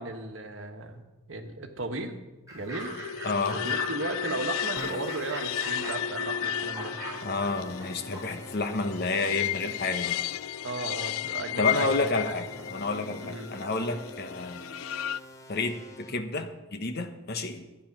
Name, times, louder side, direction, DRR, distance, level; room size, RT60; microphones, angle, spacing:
voice 1, 0.0-2.1 2.5-2.9 3.5-7.0 10.6-12.6 13.2-13.5, right 2 dB, 65° right, 6 dB, 1.3 m, -36 dB
Fowl / Bird, 2.5-8.7, right 1 dB, 15° right, 5.2 m, -41 dB
sound 1, 2.8-15.2, left 10 dB, 75° left, 0.3 m, -34 dB
voice 2, 3.2-3.6 7.2-10.2 11.6-14.6 15.5-17.7, left 3 dB, 50° left, 7 dB, 1.0 m, -30 dB
sound 2, 4.8-16.1, equal, 15° left, 0.9 m, -48 dB
12.5 x 9.3 x 6.0 m, 1.1 s
head